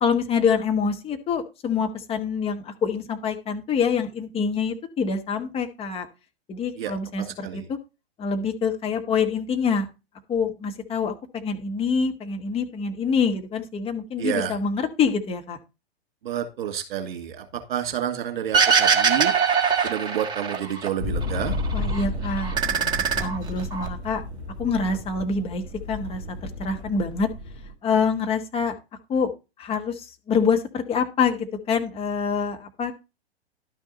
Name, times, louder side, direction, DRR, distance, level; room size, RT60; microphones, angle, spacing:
voice 1, 0.0-6.1 6.5-7.8 8.2-9.9 10.3-15.6 21.7-24.2 24.6-25.6 25.9-27.3 27.8-28.8 29.1-29.3 29.6-32.9, left 5 dB, 20° left, 5 dB, 1.3 m, -26 dB
voice 2, 14.2-14.6 16.2-17.4 17.7-19.3 19.8-21.5, right 10 dB, 50° right, 7 dB, 2.7 m, -29 dB
sound 1, 18.5-20.9 21.2-22.0 22.4-23.9, right 6 dB, 15° right, 1.5 m, -22 dB
sound 2, 21.0-27.7, left 2 dB, 85° left, 2.2 m, -32 dB
12.0 x 6.3 x 4.0 m, 0.28 s
figure-of-eight pair, 105°, 32 cm